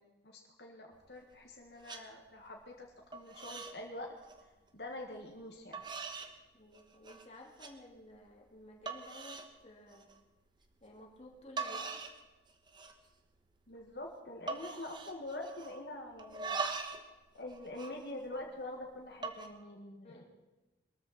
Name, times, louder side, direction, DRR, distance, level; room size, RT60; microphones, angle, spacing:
voice 1, 0.0-2.9 3.1-4.1 4.7-5.8 13.7-16.6 17.4-20.2, left 1 dB, 70° left, 1 dB, 1.9 m, -45 dB
sound 1, 0.9-1.5 1.8-2.0 2.5-2.9 3.1-3.8 4.1-4.4 5.1-5.2 5.7-6.3 6.7-7.2 7.6-7.7 8.3-8.4 8.9-9.5 9.9-10.2 11.2-11.3 11.6-12.2 12.5-13.1 13.4-13.5 13.7-14.0 14.5-15.8 16.2-17.1 17.4-18.6 19.1-19.5, right 4 dB, 25° right, 1.2 m, -42 dB
voice 2, 6.5-10.1 10.8-12.0 20.0-20.2, left 1 dB, 35° left, -1 dB, 2.8 m, -54 dB
22.5 x 14.0 x 4.4 m, 1.1 s
head